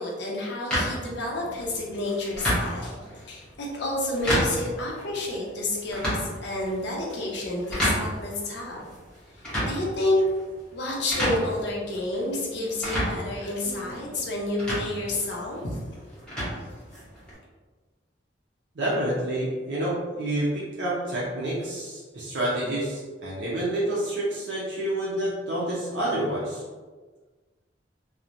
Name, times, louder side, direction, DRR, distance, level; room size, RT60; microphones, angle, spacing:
voice 1, 0.0-8.9 9.3-10.2 10.7-15.8, left 2 dB, 65° left, -3 dB, 0.5 m, -30 dB
sound 1, 0.7-17.3, equal, 5° left, 0.8 m, -32 dB
voice 2, 18.8-26.6, right 1 dB, 70° right, -7 dB, 0.6 m, -28 dB
2.9 x 2.1 x 2.5 m, 1.4 s
head